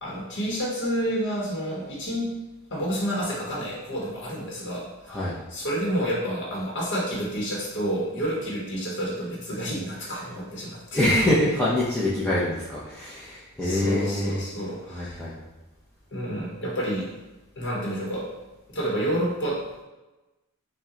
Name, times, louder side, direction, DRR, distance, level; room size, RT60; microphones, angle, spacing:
voice 1, 0.0-2.3 2.7-11.0 13.6-15.2 16.1-17.1 17.6-18.3 18.7-19.6, equal, 55° left, -4 dB, 1.0 m, -29 dB
voice 2, 10.9-14.4 14.9-15.4, left 1 dB, 5° left, -9 dB, 0.6 m, -25 dB
5.7 x 2.2 x 3.8 m, 1.1 s
head